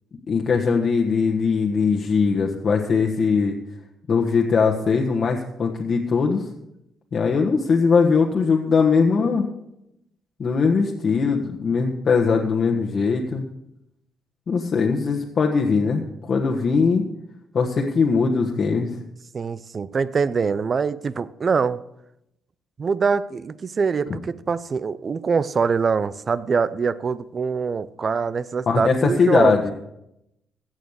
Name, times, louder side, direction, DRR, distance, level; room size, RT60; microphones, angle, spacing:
voice 1, 0.3-3.6 4.1-6.4 7.1-9.5 10.4-13.4 14.5-17.0 17.5-18.9 28.7-29.7, left 5 dB, 50° left, 0 dB, 1.4 m, -20 dB
voice 2, 19.3-21.8 22.8-29.6, right 5 dB, 40° right, 17 dB, 0.6 m, -24 dB
16.0 x 6.4 x 6.6 m, 0.82 s
cardioid pair, 90°, 0 cm